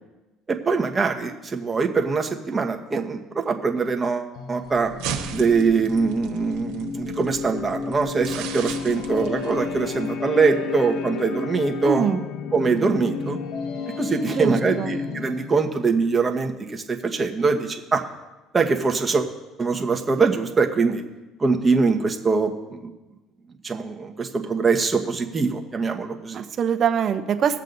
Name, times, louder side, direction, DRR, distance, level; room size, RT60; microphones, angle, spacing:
voice 1, 0.5-4.9 5.3-12.1 12.5-13.4 14.0-18.0 18.5-19.3 19.6-21.0 21.4-22.9 23.6-26.4, right 4 dB, 20° right, 3 dB, 1.3 m, -23 dB
sound 1, 4.3-15.7, left 5 dB, 70° left, 0.9 m, -32 dB
sound 2, 4.6-10.1, right 9 dB, 90° right, 1.3 m, -37 dB
voice 2, 11.9-12.2 14.3-14.9 26.3-27.6, right 7 dB, 45° right, 8 dB, 0.9 m, -23 dB
20.0 x 7.3 x 4.0 m, 1.1 s
cardioid pair, 115°, 0 cm